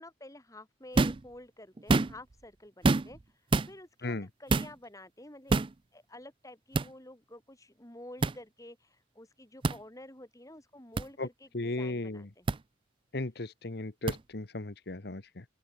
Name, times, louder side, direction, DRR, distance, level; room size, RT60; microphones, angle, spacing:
voice 1, 0.0-3.2 3.7-5.6 5.9-12.6, left 1 dB, 20° left, 3.7 m, -50 dB
sound 1, 0.9-1.3 1.8-2.3 2.8-3.2 3.5-3.7 4.5-4.7 5.5-5.7 6.7-6.9 8.2-8.4 9.6-9.8 11.0-11.1 12.5-12.6 14.1-14.2, right 3 dB, 30° right, 0.4 m, -26 dB
voice 2, 11.5-12.3 13.1-15.4, left 2 dB, 60° left, 1.2 m, -36 dB
open air
head